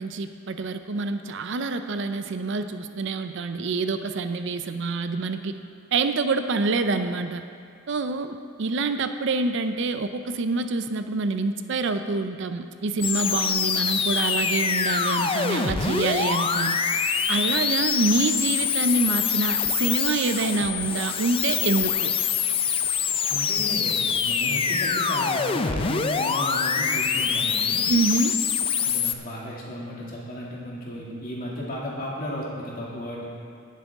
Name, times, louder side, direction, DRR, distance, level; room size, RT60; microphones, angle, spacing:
voice 1, 0.0-5.6 5.9-7.4 7.9-16.8 17.3-22.1 27.9-28.4, right 3 dB, 60° right, 9 dB, 0.5 m, -26 dB
sound 1, 13.0-29.1, left 6 dB, 25° left, 0.4 m, -25 dB
voice 2, 23.3-27.8 28.8-33.2, equal, 45° left, -5 dB, 2.4 m, -34 dB
17.0 x 7.5 x 3.6 m, 2.4 s
head